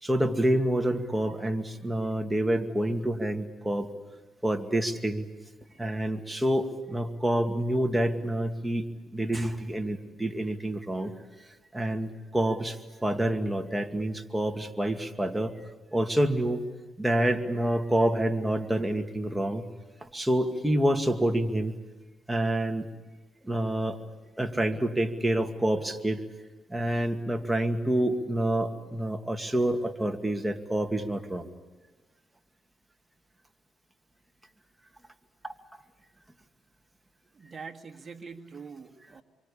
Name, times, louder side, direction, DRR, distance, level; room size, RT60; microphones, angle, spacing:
voice 1, 0.0-3.9 4.4-5.3 5.8-8.9 9.1-11.1 11.7-15.5 15.9-16.6 17.0-19.7 20.0-21.8 22.3-22.9 23.4-24.0 24.4-26.2 26.7-31.5 35.4-35.5, right 1 dB, 5° right, 4 dB, 2.3 m, -27 dB
voice 2, 37.3-39.2, right 5 dB, 35° right, 3 dB, 2.2 m, -44 dB
27.0 x 24.0 x 8.7 m, 1.2 s
cardioid pair, 90°, 0 cm